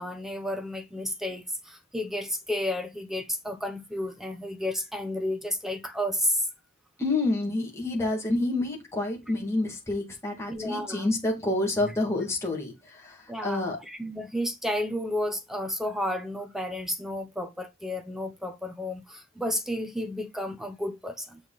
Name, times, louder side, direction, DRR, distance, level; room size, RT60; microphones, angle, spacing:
voice 1, 0.0-6.5 8.0-8.2 10.5-11.1 13.3-21.4, left 1 dB, ahead, 1.0 m, -32 dB
voice 2, 7.0-12.7 13.0-13.1 13.4-13.8, left 2 dB, 15° left, 2.3 m, -28 dB
7.1 x 5.2 x 4.1 m
head